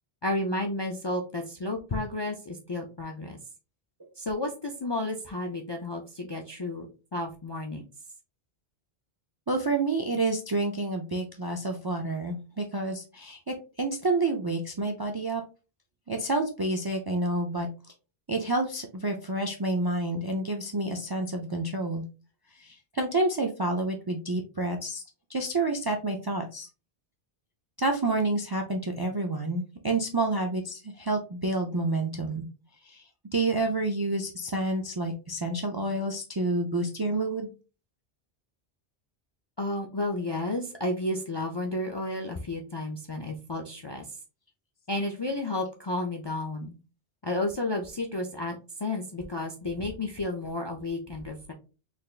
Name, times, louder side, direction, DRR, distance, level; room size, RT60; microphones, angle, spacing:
voice 1, 0.2-3.4 4.2-7.8 39.6-44.2 44.9-46.8 47.2-51.5, left 2 dB, 40° left, 2 dB, 0.3 m, -32 dB
voice 2, 9.5-15.4 16.1-17.7 18.3-22.0 22.6-25.0 25.3-26.7 27.8-32.5 32.9-33.0 33.3-37.5, right 2 dB, 40° right, 4 dB, 0.3 m, -29 dB
4.1 x 3.3 x 2.3 m, 0.33 s
omnidirectional pair, 1.1 m